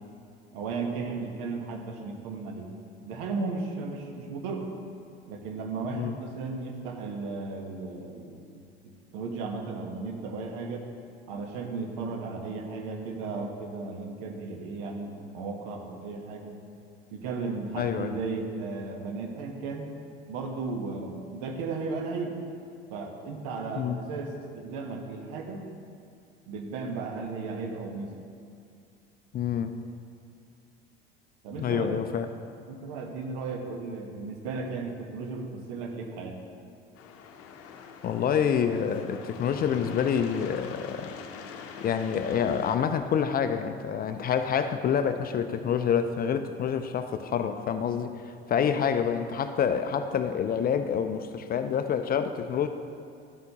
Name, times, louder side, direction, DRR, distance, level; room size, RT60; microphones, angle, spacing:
voice 1, 0.5-2.7 3.0-4.7 5.3-8.4 9.1-10.9 11.3-16.6 17.1-19.9 20.3-22.4 22.9-25.6 26.5-28.2 31.4-32.1 32.7-36.4 48.6-48.8, right 4 dB, 60° right, 3 dB, 1.2 m, -35 dB
voice 2, 17.8-18.1 23.8-24.0 29.3-29.7 31.6-32.3 38.0-41.1 41.8-52.7, left 7 dB, 30° left, 9 dB, 0.5 m, -27 dB
sound 1, 37.0-42.8, left 6 dB, 50° left, 0.8 m, -43 dB
12.0 x 7.7 x 2.9 m, 2.4 s
figure-of-eight pair, 70°, 30 cm